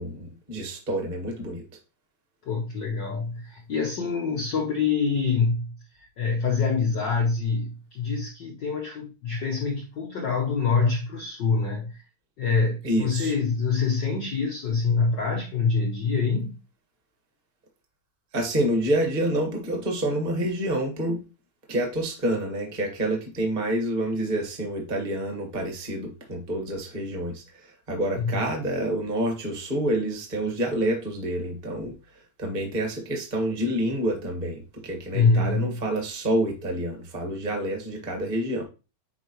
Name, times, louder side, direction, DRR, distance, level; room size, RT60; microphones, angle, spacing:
voice 1, 0.0-1.6 12.8-13.3 18.3-21.2 21.7-31.9 32.4-38.6, right 1 dB, 20° right, 1.2 m, -28 dB
voice 2, 2.4-12.0 12.4-16.6 28.2-28.4 35.1-35.8, left 4 dB, 85° left, 0.9 m, -25 dB
9.6 x 3.9 x 3.1 m
omnidirectional pair, 3.4 m